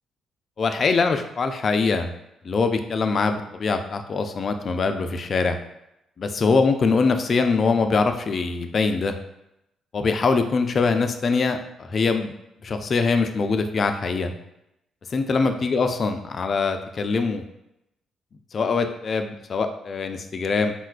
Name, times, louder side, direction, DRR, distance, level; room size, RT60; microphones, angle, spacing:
voice 1, 0.6-2.1 2.4-5.6 6.2-9.1 9.9-12.3 12.6-14.3 15.1-17.4 18.5-20.7, left 4 dB, 45° left, 7 dB, 0.3 m, -23 dB
3.9 x 2.2 x 2.4 m, 0.86 s
cardioid pair, 90°, 0 cm